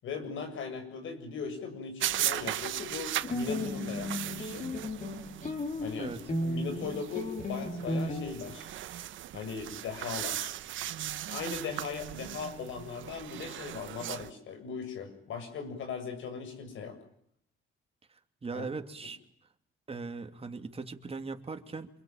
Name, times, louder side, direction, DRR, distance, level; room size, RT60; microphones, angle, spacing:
voice 1, 0.0-4.7 5.8-6.1 6.4-8.7 9.3-10.5 11.1-17.0 18.5-18.7, left 5 dB, 75° left, 6 dB, 7.5 m, -39 dB
sound 1, 2.0-14.3, right 13 dB, 80° right, 1.1 m, -38 dB
sound 2, 3.2-8.3, left 1 dB, 40° left, 5.4 m, -34 dB
voice 2, 18.4-19.2 19.9-21.9, right 4 dB, 30° right, 6 dB, 3.0 m, -39 dB
27.5 x 23.0 x 9.1 m, 0.69 s
cardioid pair, 90°, 20 cm